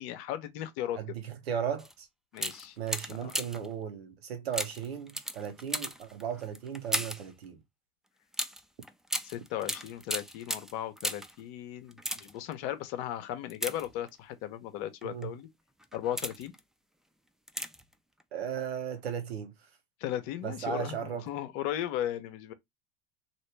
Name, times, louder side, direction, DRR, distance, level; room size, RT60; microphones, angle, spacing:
voice 1, 0.0-1.0 2.3-2.8 3.1-3.3 9.2-15.5 15.9-16.5 20.0-22.5, left 11 dB, 60° left, 0.9 m, -36 dB
voice 2, 0.9-2.1 2.8-7.6 15.0-15.4 18.3-19.5 20.4-21.3, right 8 dB, 85° right, 0.9 m, -36 dB
sound 1, 1.8-1.9 2.3-3.7 4.5-7.3 8.3-11.4 11.9-12.5 13.5-14.3 15.0-15.2 15.8-16.6 17.5-17.9 18.2-18.3, equal, ahead, 0.4 m, -36 dB
2.9 x 2.6 x 3.3 m
hypercardioid pair, 80°, 30 cm